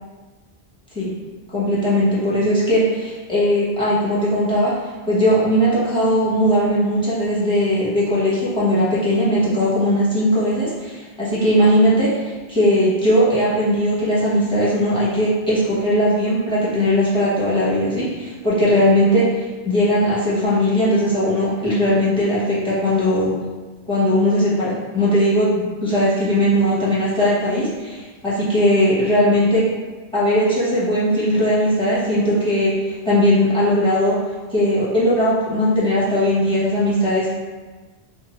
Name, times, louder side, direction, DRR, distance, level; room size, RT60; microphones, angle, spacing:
voice 1, 1.5-4.8 5.1-23.3 23.9-29.7 30.1-34.2 34.5-37.3, equal, 5° left, -10 dB, 1.1 m, -19 dB
2.7 x 2.5 x 4.2 m, 1.3 s
omnidirectional pair, 1.1 m